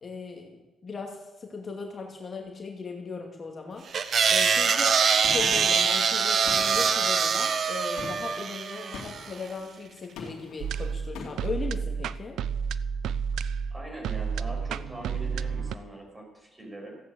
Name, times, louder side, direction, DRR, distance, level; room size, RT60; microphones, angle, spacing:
voice 1, 0.0-3.8 4.3-5.0 5.3-12.4, left 4 dB, 35° left, 1 dB, 2.3 m, -37 dB
sound 1, 3.9-9.3, right 6 dB, 50° right, 1.1 m, -24 dB
Gunshot gunfire, 5.2-5.9 6.5-7.2 8.0-8.4 8.9-9.4 10.2-10.6 11.1-11.6, left 4 dB, 90° left, 2.7 m, -41 dB
sound 2, 10.6-15.8, right 6 dB, 80° right, 0.5 m, -31 dB
voice 2, 13.7-17.0, right 1 dB, 20° right, 1 dB, 5.8 m, -42 dB
15.0 x 9.0 x 8.0 m, 1.2 s
cardioid pair, 90°, 0 cm